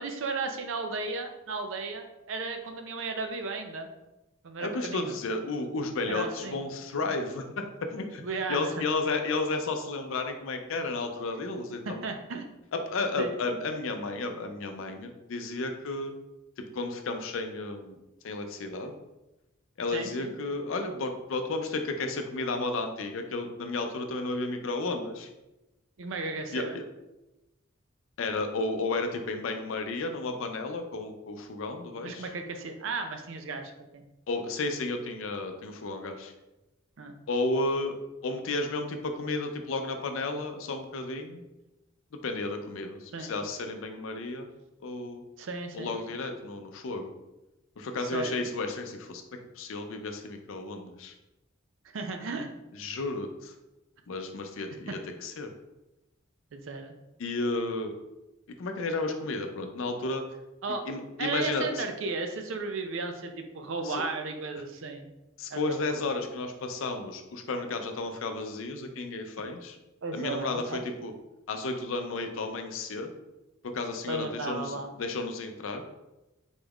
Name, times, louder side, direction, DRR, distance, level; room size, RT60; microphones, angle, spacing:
voice 1, 0.0-3.9 4.4-5.2 6.1-6.6 8.2-8.8 11.9-12.5 13.2-13.3 19.9-20.3 26.0-26.8 32.0-34.0 37.0-37.1 43.1-43.3 45.4-46.0 48.1-48.4 51.9-52.5 54.9-55.0 56.5-56.9 60.6-60.8 61.2-65.1 65.5-65.8 70.0-70.8 74.1-74.9, right 3 dB, 70° right, 6 dB, 0.5 m, -35 dB
voice 2, 4.6-7.6 7.9-8.2 8.5-12.0 12.7-16.2 16.6-18.0 18.2-18.9 19.8-25.3 26.5-26.8 28.2-32.3 34.3-36.3 37.3-38.0 38.2-41.4 42.2-44.5 44.8-45.2 45.7-47.1 47.8-49.2 49.6-51.1 52.8-53.5 54.1-55.5 57.2-57.9 58.6-60.2 60.9-61.8 63.8-64.0 65.4-69.8 70.1-71.1 71.5-73.1 73.6-75.8, left 3 dB, 70° left, 6 dB, 0.5 m, -32 dB
3.9 x 3.5 x 2.3 m, 0.98 s
head